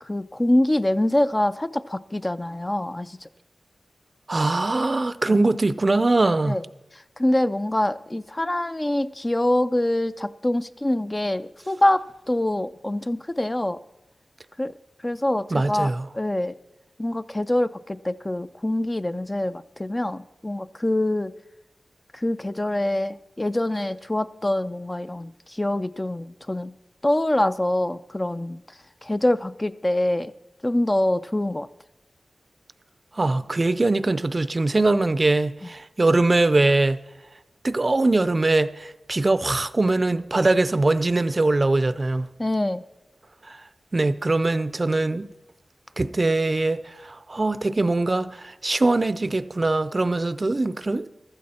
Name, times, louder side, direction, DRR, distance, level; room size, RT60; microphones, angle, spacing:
voice 1, 0.0-3.3 5.3-5.4 6.5-6.6 7.2-13.8 14.6-14.7 15.0-16.5 17.0-21.3 22.1-26.7 27.0-28.6 29.0-30.3 30.6-31.7 42.4-42.8, left 1 dB, 20° left, 0.3 m, -25 dB
voice 2, 4.3-6.6 15.5-16.1 33.2-37.0 37.6-42.3 43.5-43.6 43.9-45.3 46.0-51.1, right 2 dB, 35° right, 0.5 m, -22 dB
14.5 x 12.5 x 4.3 m
wide cardioid pair, 90°, 0 cm